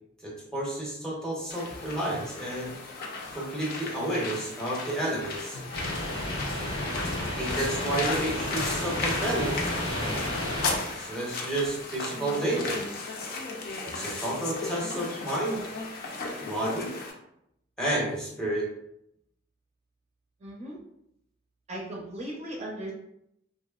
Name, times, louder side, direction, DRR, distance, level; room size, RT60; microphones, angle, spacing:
voice 1, 0.2-2.7 3.3-5.6 7.0-9.6 11.0-12.8 13.9-15.6 16.4-16.9 17.8-18.7, right 1 dB, 5° left, -5 dB, 0.7 m, -31 dB
sound 1, 1.5-17.1, left 3 dB, 55° left, 0.5 m, -36 dB
sound 2, 5.7-10.8, left 1 dB, 85° left, 0.8 m, -31 dB
voice 2, 20.4-20.8 21.7-22.9, right 1 dB, 35° right, -3 dB, 0.5 m, -37 dB
2.8 x 2.4 x 2.3 m, 0.78 s
head